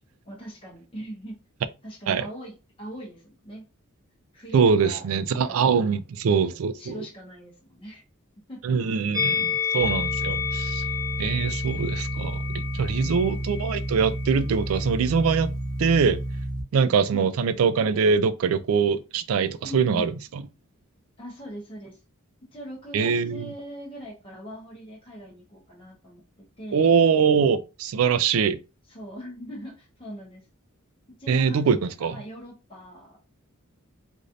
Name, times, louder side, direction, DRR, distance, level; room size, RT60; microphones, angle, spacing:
voice 1, 0.3-1.4 1.8-3.6 4.3-5.1 5.5-5.9 6.8-8.0 8.5-8.8 12.7-13.3 17.1-17.3 19.6-20.1 21.2-22.0 22.5-26.2 26.6-26.9 28.9-30.5 31.2-33.2, equal, 25° left, 1.0 m, -41 dB
voice 2, 4.5-6.9 8.6-10.8 11.2-15.5 15.8-16.2 16.7-20.1 22.9-23.5 26.7-28.6 31.3-32.2, right 6 dB, 70° right, 0.3 m, -23 dB
Musical instrument, 9.1-14.4 14.6-14.8, left 7 dB, 15° right, 0.7 m, -30 dB
sound 1, 9.8-16.6, right 1 dB, 5° left, 1.4 m, -31 dB
3.1 x 2.6 x 2.6 m
head